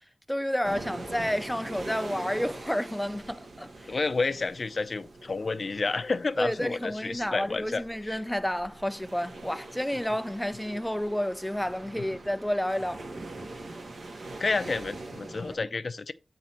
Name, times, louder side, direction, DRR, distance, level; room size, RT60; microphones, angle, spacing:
voice 1, 0.3-4.0 6.4-13.1, equal, 5° left, 0.4 m, -30 dB
sound 1, 0.6-15.6, right 2 dB, 75° right, 1.8 m, -43 dB
voice 2, 3.9-8.2 14.4-16.1, left 3 dB, 55° left, 0.6 m, -30 dB
9.2 x 4.0 x 4.4 m
wide cardioid pair, 95°, 0 cm